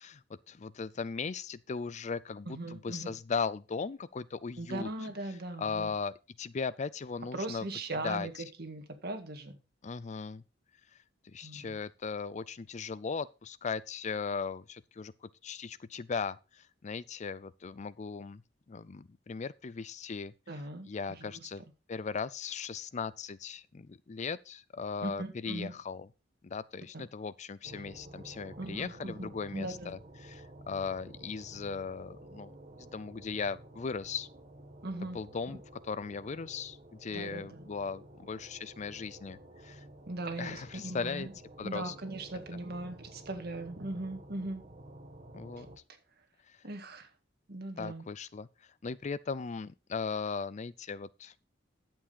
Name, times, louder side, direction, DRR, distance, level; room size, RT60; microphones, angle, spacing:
voice 1, 0.0-4.9 5.6-7.7 8.0-8.4 9.8-10.4 11.3-18.4 18.7-20.3 20.9-21.6 21.9-26.1 26.4-32.5 32.9-34.3 35.1-39.9 40.4-41.3 41.6-41.9 42.5-42.6 45.3-45.7 46.5-46.6 47.8-48.5 48.8-51.3, left 5 dB, 40° left, 0.5 m, -38 dB
voice 2, 2.5-3.2 4.6-5.9 7.3-9.6 11.4-11.8 20.5-21.4 25.0-25.7 26.9-27.0 28.6-29.9 34.8-35.2 35.5-35.6 37.1-37.6 40.1-41.3 41.6-44.6 46.6-47.1 47.5-48.0, right 2 dB, 60° right, 1.9 m, -39 dB
sound 1, 27.6-45.8, right 1 dB, 40° right, 1.8 m, -52 dB
11.5 x 7.6 x 4.0 m
head